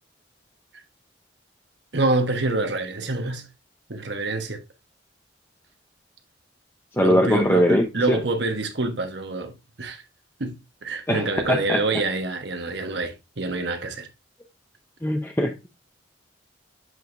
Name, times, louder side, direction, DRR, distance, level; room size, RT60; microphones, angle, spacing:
voice 1, 1.9-3.5 3.9-4.6 7.0-10.0 10.4-10.5 10.8-14.1, right 2 dB, 60° right, 1.2 m, -26 dB
voice 2, 7.0-8.2 11.1-11.8 15.0-15.7, left 1 dB, 10° left, 0.6 m, -21 dB
7.8 x 4.9 x 2.6 m
head